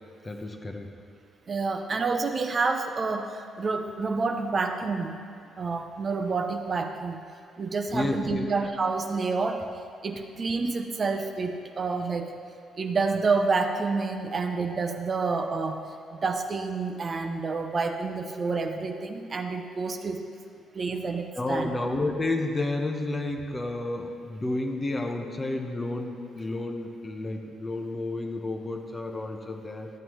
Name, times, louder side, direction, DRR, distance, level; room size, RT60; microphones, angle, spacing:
voice 1, 0.2-0.9 7.9-8.5 21.3-29.9, left 2 dB, 25° left, 3 dB, 0.8 m, -31 dB
voice 2, 1.5-5.2 5.6-7.2 7.6-9.6 10.0-12.3 12.8-15.8 16.1-20.3 20.7-21.7, right 4 dB, 40° right, 5 dB, 0.6 m, -28 dB
12.5 x 7.9 x 3.1 m, 2.3 s
cardioid pair, 90°, 0 cm